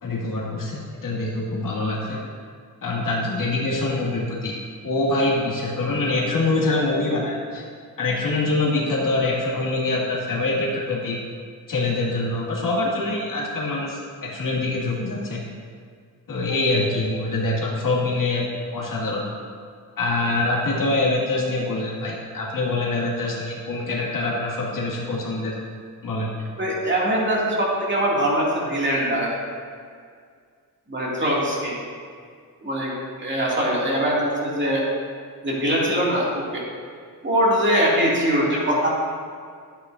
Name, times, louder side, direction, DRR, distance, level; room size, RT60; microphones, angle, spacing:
voice 1, 0.0-2.2 2.8-4.5 4.8-7.6 8.0-11.2 11.7-15.4 16.3-18.5 18.7-19.2 20.0-25.6 26.0-26.3, left 2 dB, 55° left, -4 dB, 2.2 m, -24 dB
voice 2, 26.6-29.4 30.9-31.8 32.6-34.8 35.4-36.6 37.2-38.9, equal, 30° right, -5 dB, 2.5 m, -22 dB
11.5 x 9.1 x 2.7 m, 2.1 s
cardioid pair, 105°, 38 cm